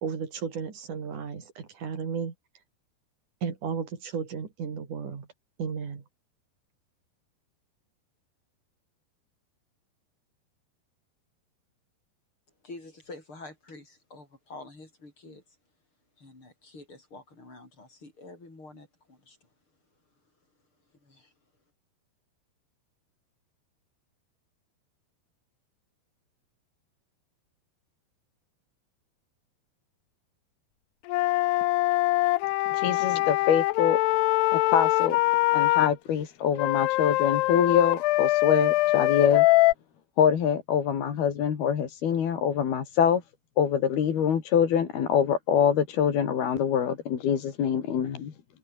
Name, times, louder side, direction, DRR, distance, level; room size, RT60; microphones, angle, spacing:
voice 1, 0.0-2.3 3.4-5.3 5.6-6.0, right 6 dB, 50° right, 4.8 m, -34 dB
voice 2, 12.6-15.4 16.2-19.5 21.0-21.3, left 2 dB, 30° left, 8.7 m, -47 dB
Wind instrument woodwind instrument, 31.1-35.9 36.6-39.7, left 19 dB, 85° left, 2.7 m, -23 dB
voice 3, 32.7-34.0 34.5-35.2 35.5-39.5 40.2-43.2 43.6-48.3, left 8 dB, 65° left, 4.7 m, -25 dB
omnidirectional pair, 4.8 m